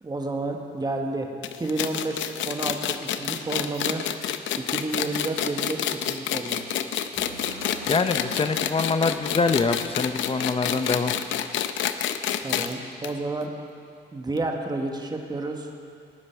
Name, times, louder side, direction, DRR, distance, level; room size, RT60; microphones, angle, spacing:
voice 1, 0.0-4.1 4.6-6.7 12.4-13.5 14.1-15.7, right 2 dB, 20° right, 3 dB, 1.4 m, -30 dB
sound 1, 1.4-12.7 13.0-13.1 13.4-13.5 14.4-14.5, left 10 dB, 75° left, 0.6 m, -28 dB
sound 2, 7.2-11.1, right 2 dB, 70° right, 4.0 m, -45 dB
voice 2, 7.9-11.1, left 4 dB, 30° left, 9 dB, 0.7 m, -24 dB
18.5 x 9.6 x 4.6 m, 2.4 s
cardioid pair, 90°, 20 cm